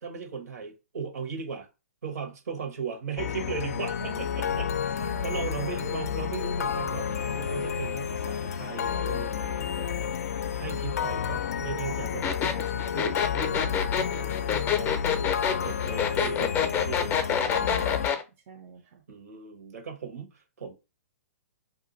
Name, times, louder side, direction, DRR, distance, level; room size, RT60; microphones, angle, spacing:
voice 1, 0.0-1.7 2.0-10.0 10.6-15.0 15.5-17.1 17.4-17.8 19.1-20.7, right 6 dB, 75° right, 1.2 m, -38 dB
sound 1, 3.2-18.1, left 7 dB, 70° left, 0.4 m, -30 dB
voice 2, 4.0-6.1 17.5-18.2 18.5-19.0, right 7 dB, 45° right, 0.6 m, -47 dB
sound 2, 12.2-18.2, left 8 dB, 20° left, 0.6 m, -27 dB
2.6 x 2.4 x 3.9 m
hypercardioid pair, 135°, 9 cm